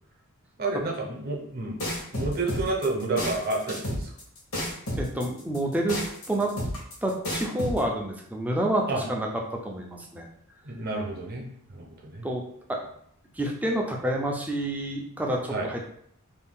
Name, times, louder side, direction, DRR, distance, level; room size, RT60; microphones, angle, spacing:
voice 1, 0.6-1.8 2.1-4.1 8.9-9.0 10.6-12.2 15.5-15.7, right 2 dB, 45° right, 0 dB, 0.7 m, -30 dB
sound 1, 1.8-7.8, equal, 75° left, 1.0 m, -31 dB
voice 2, 5.0-6.0 6.3-6.5 7.0-9.3 9.6-10.3 12.2-12.4 12.7-12.8 13.3-15.8, right 1 dB, 5° right, 0 dB, 0.4 m, -28 dB
2.6 x 2.3 x 3.6 m, 0.68 s
head